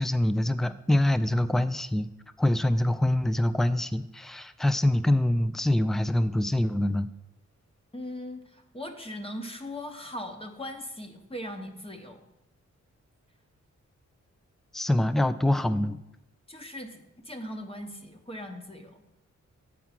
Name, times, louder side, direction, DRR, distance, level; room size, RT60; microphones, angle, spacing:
voice 1, 0.0-2.1 2.4-7.1 14.7-16.0, left 1 dB, ahead, 13 dB, 0.3 m, -25 dB
voice 2, 7.9-12.3 16.5-19.0, left 1 dB, 20° left, 4 dB, 1.0 m, -39 dB
8.3 x 4.6 x 5.9 m, 0.88 s
wide cardioid pair, 90°, 29 cm